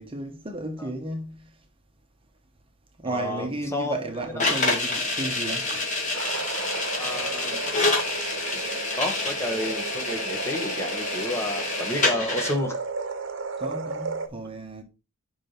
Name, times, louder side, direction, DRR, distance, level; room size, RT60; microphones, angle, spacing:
voice 1, 0.0-1.5 3.0-5.9 13.6-14.8, right 2 dB, 25° right, 1.0 m, -33 dB
voice 2, 3.0-4.0 7.0-7.6 8.5-12.8, left 1 dB, 15° left, 1.5 m, -31 dB
sound 1, 4.4-12.5, left 2 dB, 40° left, 2.6 m, -27 dB
sound 2, 6.1-14.3, right 4 dB, 65° right, 0.9 m, -34 dB
5.6 x 4.8 x 5.2 m
head